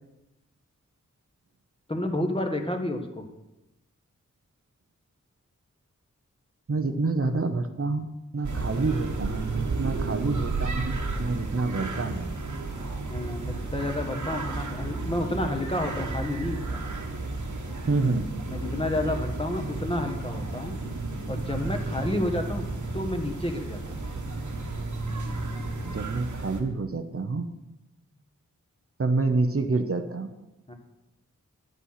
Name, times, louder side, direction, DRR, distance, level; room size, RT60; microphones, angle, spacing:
voice 1, 1.9-3.2 7.2-7.3 10.1-10.2 13.1-16.8 18.5-20.8 21.3-22.7 22.9-24.0 30.7-30.8, left 1 dB, 15° left, 4 dB, 1.4 m, -30 dB
voice 2, 6.7-8.1 8.3-12.3 17.9-18.5 25.8-27.5 29.0-30.3, right 3 dB, 45° right, 7 dB, 0.8 m, -27 dB
sound 1, 8.4-26.6, right 3 dB, 70° right, 1.5 m, -32 dB
10.5 x 8.4 x 5.7 m, 0.99 s
wide cardioid pair, 80°, 31 cm